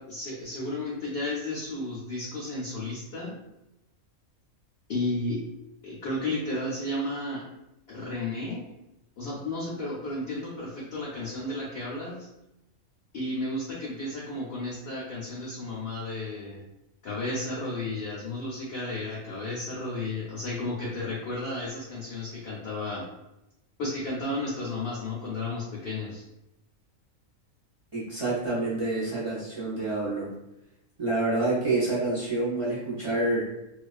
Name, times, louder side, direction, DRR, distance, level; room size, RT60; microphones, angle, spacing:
voice 1, 0.0-3.4 4.9-5.4 5.8-7.4 7.9-8.6 9.2-12.3 13.1-16.6 17.0-23.1 23.8-26.2, left 2 dB, 60° left, -6 dB, 0.7 m, -33 dB
voice 2, 27.9-30.3 31.0-33.5, right 2 dB, 40° right, -8 dB, 0.4 m, -27 dB
2.4 x 2.3 x 2.4 m, 0.89 s
omnidirectional pair, 1.5 m